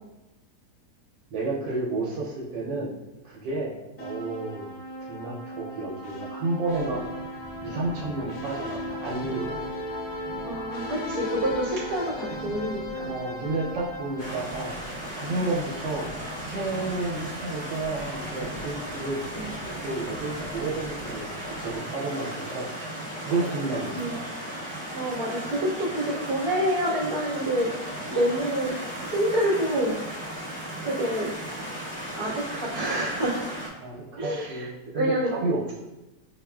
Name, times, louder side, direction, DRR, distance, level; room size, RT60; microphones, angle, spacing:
voice 1, 1.3-3.0 3.2-4.7 5.1-7.0 7.6-9.6 13.0-14.7 15.2-16.1 16.5-19.2 19.6-22.7 23.2-24.3 33.8-35.7, right 3 dB, 85° right, -5 dB, 1.3 m, -31 dB
sound 1, 4.0-15.2, left 1 dB, 75° left, 1.2 m, -36 dB
sound 2, 6.7-21.9, right 1 dB, 45° right, 1.1 m, -45 dB
voice 2, 10.4-13.1 15.3-15.4 19.3-19.5 23.9-24.2 24.9-27.7 28.1-28.7 29.0-29.9 30.8-31.3 32.1-33.4 34.1-34.7 34.9-35.3, right 1 dB, 25° left, -12 dB, 0.8 m, -27 dB
sound 3, 14.2-33.7, equal, 15° right, 1.1 m, -36 dB
5.8 x 2.3 x 2.2 m, 1.0 s
omnidirectional pair, 1.9 m